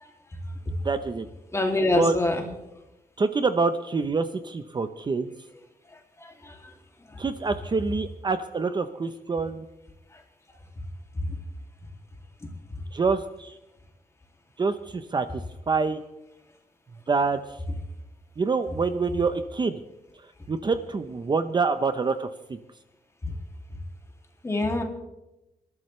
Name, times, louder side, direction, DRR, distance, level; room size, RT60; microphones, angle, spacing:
voice 1, 0.8-1.3 1.9-2.2 3.2-5.3 7.2-9.7 12.9-13.6 14.6-16.0 17.1-17.6 18.4-19.8 20.1-22.6, right 4 dB, 30° right, 9 dB, 0.8 m, -26 dB
voice 2, 1.5-2.4 6.2-6.5 24.4-24.8, left 2 dB, 20° left, 2 dB, 2.5 m, -25 dB
28.5 x 13.5 x 3.2 m, 0.95 s
wide cardioid pair, 170°, 15 cm